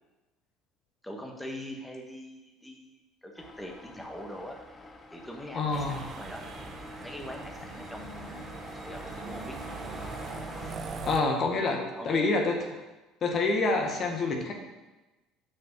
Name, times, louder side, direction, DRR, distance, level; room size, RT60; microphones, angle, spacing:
voice 1, 1.0-2.9 3.2-4.6 5.1-8.4 8.7-9.9 11.9-12.3, equal, 5° left, 1 dB, 1.4 m, -43 dB
sound 1, 3.4-10.8, left 2 dB, 20° left, 1.0 m, -46 dB
voice 2, 5.5-6.0 11.0-12.6 13.2-14.5, left 3 dB, 45° left, 2 dB, 1.3 m, -27 dB
sound 2, 5.7-11.2, right 4 dB, 40° right, 0.9 m, -41 dB
6.2 x 5.2 x 6.0 m, 1.1 s
supercardioid pair, 85°, 0 cm